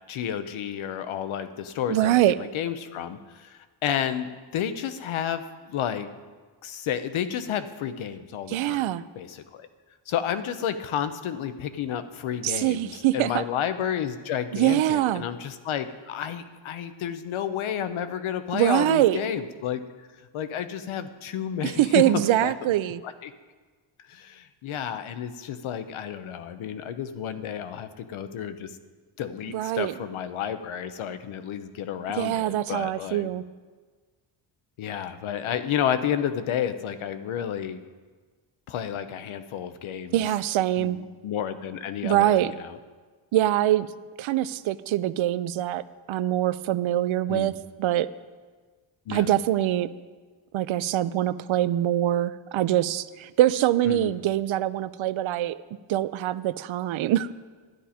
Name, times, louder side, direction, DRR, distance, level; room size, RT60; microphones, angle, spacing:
voice 1, 0.1-6.1 6.6-8.8 9.2-9.7 10.1-19.8 20.3-22.0 22.4-22.7 23.0-23.3 24.1-28.7 29.2-33.3 34.8-37.8 38.7-40.2 40.8-42.8 47.3-47.5 49.1-49.3 53.9-54.1, left 9 dB, 90° left, 10 dB, 0.8 m, -31 dB
voice 2, 1.9-2.4 8.5-9.0 12.4-13.4 14.5-15.2 18.5-19.2 21.6-23.0 29.5-29.9 32.2-33.4 40.1-41.0 42.0-42.5 43.3-43.9 44.2-47.5 47.8-48.1 49.1-49.9 50.5-55.6 55.9-57.3, right 13 dB, 75° right, 15 dB, 0.6 m, -24 dB
12.0 x 10.5 x 4.2 m, 1.4 s
cardioid pair, 125°, 48 cm